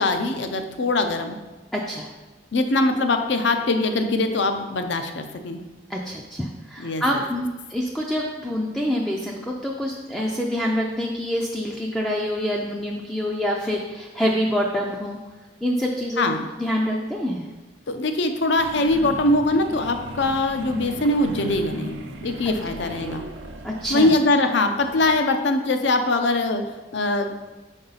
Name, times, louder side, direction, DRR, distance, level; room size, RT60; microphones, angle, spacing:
voice 1, 0.0-1.4 2.5-5.6 6.8-7.0 16.2-16.5 17.9-21.9 22.2-23.2 23.9-26.6 26.9-27.3, left 2 dB, 65° left, 7 dB, 0.6 m, -22 dB
voice 2, 1.7-2.1 5.9-15.2 15.6-16.2 16.6-17.4 23.6-24.1, equal, 5° left, -2 dB, 0.4 m, -26 dB
sound 1, 18.5-24.3 24.6-25.2, right 2 dB, 75° right, 0.7 m, -37 dB
5.4 x 4.7 x 4.0 m, 1.2 s
head